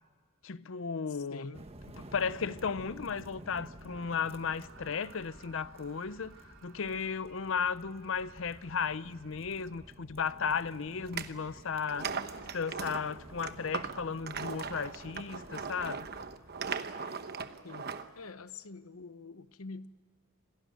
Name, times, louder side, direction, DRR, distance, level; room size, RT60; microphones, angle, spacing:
voice 1, 0.4-1.5 2.0-6.3 6.6-12.1 12.5-16.1, left 6 dB, 65° left, 0.6 m, -35 dB
voice 2, 1.1-1.6 17.6-20.0, left 3 dB, 90° left, 1.0 m, -46 dB
sound 1, 1.5-16.8, right 1 dB, 30° right, 1.5 m, -52 dB
Screaming, 3.8-10.1, right 4 dB, 70° right, 3.6 m, -59 dB
sound 2, 11.1-11.3 11.8-18.1, right 5 dB, 50° right, 1.0 m, -39 dB
27.0 x 18.5 x 9.2 m
head